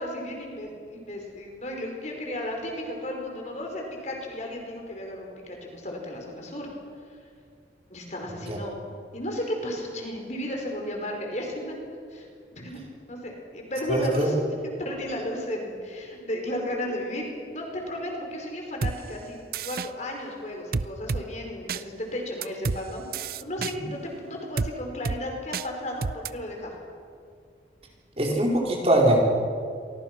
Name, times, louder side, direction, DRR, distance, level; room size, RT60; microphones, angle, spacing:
voice 1, 0.0-6.7 7.9-11.8 12.1-12.8 13.1-14.4 14.6-23.0 23.4-26.7, left 1 dB, 40° left, 1 dB, 5.1 m, -34 dB
voice 2, 13.9-14.3 23.7-23.9 28.2-29.2, right 1 dB, 35° right, -1 dB, 4.4 m, -22 dB
sound 1, 18.8-19.0 19.5-19.9 20.7-21.2 21.7-21.8 22.4-22.8 23.1-23.7 24.6-24.7 25.1-25.2 25.5-25.7 26.0-26.3, right 4 dB, 50° right, 0.6 m, -28 dB
29.0 x 24.0 x 6.1 m, 2.2 s
head